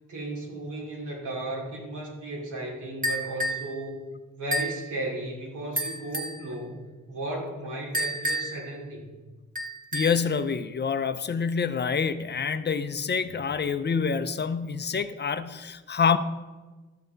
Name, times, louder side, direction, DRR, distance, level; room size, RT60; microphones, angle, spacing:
voice 1, 0.1-6.8 7.1-9.0, right 1 dB, 85° right, -2 dB, 2.8 m, -35 dB
sound 1, 3.0-3.7 4.5-4.8 5.8-6.4 7.9-8.7 9.6-10.3, equal, 30° right, 1.8 m, -30 dB
voice 2, 9.9-16.2, left 6 dB, 35° left, 11 dB, 0.5 m, -27 dB
13.5 x 6.8 x 3.9 m, 1.3 s
cardioid pair, 90°, 30 cm